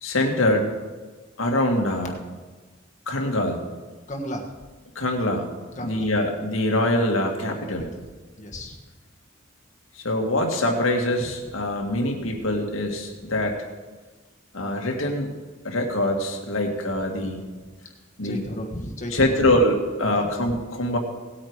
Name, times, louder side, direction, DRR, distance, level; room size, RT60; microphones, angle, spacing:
voice 1, 0.0-0.7 1.4-2.1 3.1-3.6 5.0-5.5 5.8-7.9 10.0-13.6 14.5-15.3 15.6-17.4 18.2-18.4 19.1-21.0, left 1 dB, 85° left, 2 dB, 2.2 m, -24 dB
voice 2, 4.1-4.5 5.7-6.1 8.4-8.8 12.2-12.4 18.2-19.5 20.0-20.3, equal, 40° left, 1 dB, 1.4 m, -33 dB
18.0 x 8.8 x 4.9 m, 1.3 s
head